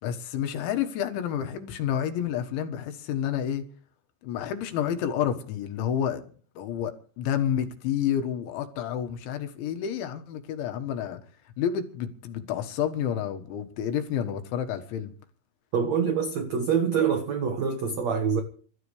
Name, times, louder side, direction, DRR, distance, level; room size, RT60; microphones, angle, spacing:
voice 1, 0.0-3.6 4.2-11.2 11.6-15.1, left 9 dB, 80° left, 3.8 m, -29 dB
voice 2, 15.7-18.4, right 6 dB, 85° right, 1.5 m, -25 dB
28.0 x 13.5 x 3.3 m
omnidirectional pair, 5.4 m